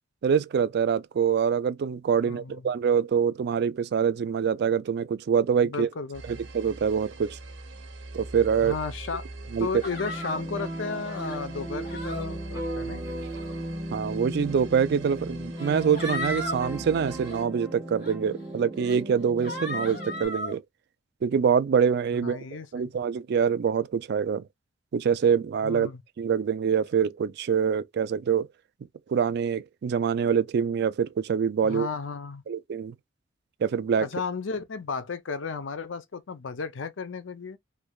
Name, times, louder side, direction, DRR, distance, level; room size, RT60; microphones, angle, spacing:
voice 1, 0.2-5.9 6.3-7.4 8.1-8.7 9.5-9.7 13.9-20.6 21.2-22.4 22.7-24.4 24.9-25.9 26.2-28.5 29.1-31.9 32.5-33.0 33.6-34.1, right 7 dB, 60° right, 0.3 m, -25 dB
voice 2, 2.2-2.7 5.6-6.4 8.6-9.3 9.6-13.0 22.2-22.9 25.6-26.0 31.6-32.4 34.0-37.6, left 5 dB, 85° left, 0.6 m, -34 dB
sound 1, 6.1-17.4, right 2 dB, 85° right, 0.9 m, -43 dB
sound 2, 9.8-10.4 11.0-11.4 11.8-12.2 13.1-13.5 14.6-14.7 15.6-16.6 17.0-17.4 18.0-18.1 18.8-19.0 19.4-20.6, left 1 dB, 55° left, 1.7 m, -35 dB
sound 3, 9.9-20.3, right 1 dB, 20° right, 1.3 m, -36 dB
3.2 x 3.1 x 2.3 m
head